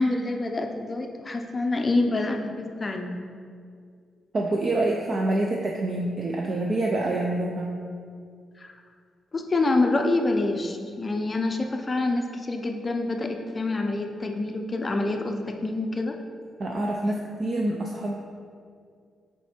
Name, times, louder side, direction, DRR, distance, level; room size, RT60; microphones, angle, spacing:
voice 1, 0.0-3.2 9.3-16.2, left 2 dB, 20° left, 4 dB, 0.5 m, -26 dB
voice 2, 4.3-7.8 16.6-18.1, right 2 dB, 35° right, 0 dB, 0.5 m, -26 dB
7.5 x 4.6 x 4.4 m, 2.2 s
wide cardioid pair, 170°, 0 cm